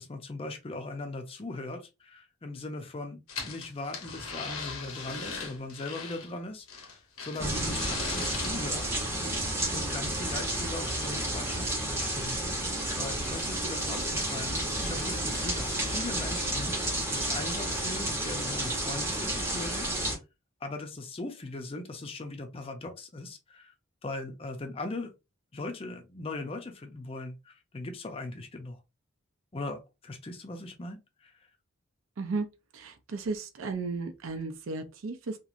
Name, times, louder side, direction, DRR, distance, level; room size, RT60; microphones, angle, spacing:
voice 1, 0.0-9.2 9.7-16.7 17.1-19.9 20.6-23.7 24.0-25.1 25.5-28.8 29.5-31.3, left 2 dB, 25° left, 0.5 m, -39 dB
sound 1, 3.3-6.3 6.7-8.5, left 4 dB, 80° left, 0.9 m, -38 dB
sound 2, 7.4-20.2, right 1 dB, 10° right, 0.7 m, -31 dB
voice 2, 32.7-35.4, right 3 dB, 65° right, 0.5 m, -34 dB
3.0 x 2.4 x 2.5 m
head